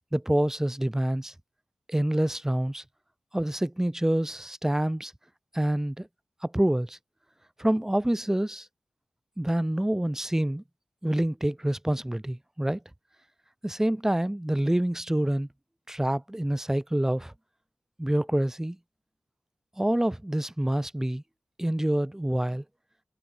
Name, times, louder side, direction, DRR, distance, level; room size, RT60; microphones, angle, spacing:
voice 1, 0.1-1.3 1.9-2.8 3.3-5.1 5.5-6.1 6.4-7.0 7.6-8.7 9.4-10.6 11.0-12.8 13.6-15.5 15.9-17.3 18.0-18.8 19.8-21.2 21.6-22.6, right 1 dB, 15° right, 1.1 m, -27 dB
cardioid pair, 50°, 4 cm